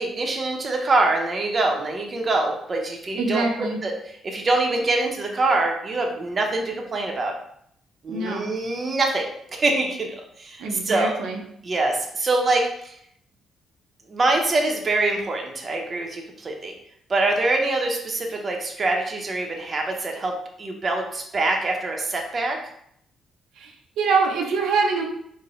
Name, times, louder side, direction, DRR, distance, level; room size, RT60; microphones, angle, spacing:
voice 1, 0.0-7.3 8.0-9.3 9.5-11.2 11.6-12.9 14.1-16.7 17.1-22.6, right 2 dB, 35° right, 1 dB, 0.7 m, -24 dB
voice 2, 3.2-3.8 8.1-8.5 10.6-11.4 23.6-25.0, right 4 dB, 85° right, 0 dB, 0.6 m, -24 dB
4.6 x 2.1 x 3.1 m, 0.70 s
cardioid pair, 90°, 0 cm